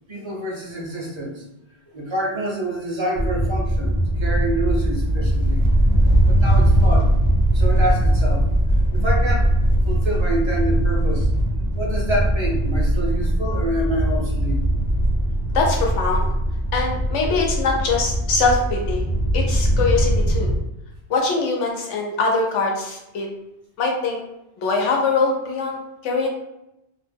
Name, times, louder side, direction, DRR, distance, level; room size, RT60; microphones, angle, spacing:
voice 1, 0.1-1.4 1.9-5.6 6.3-7.1 7.5-8.5 8.9-9.5 9.8-11.3 11.7-14.6, right 1 dB, 40° right, -2 dB, 0.4 m, -27 dB
sound 1, 3.2-20.6, right 1 dB, 50° left, 0.5 m, -20 dB
voice 2, 15.5-16.2 16.7-19.0 19.3-20.5 21.1-23.3 23.8-24.2 24.6-26.3, left 4 dB, 85° left, 0 dB, 1.0 m, -22 dB
2.3 x 2.1 x 3.3 m, 0.88 s
omnidirectional pair, 1.2 m